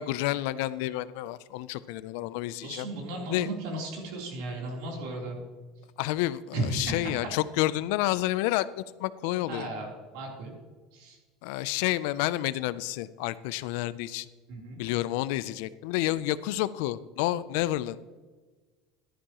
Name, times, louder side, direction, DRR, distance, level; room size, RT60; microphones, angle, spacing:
voice 1, 0.0-2.9 3.3-3.5 6.0-8.7 9.0-9.7 11.4-14.3 14.8-18.1, left 15 dB, 75° left, 17 dB, 0.4 m, -29 dB
voice 2, 2.6-5.4 6.5-7.1 9.5-10.5 10.9-11.2 14.5-14.8, right 2 dB, 75° right, -1 dB, 3.4 m, -35 dB
12.5 x 11.0 x 3.0 m, 1.4 s
supercardioid pair, 115°, 0 cm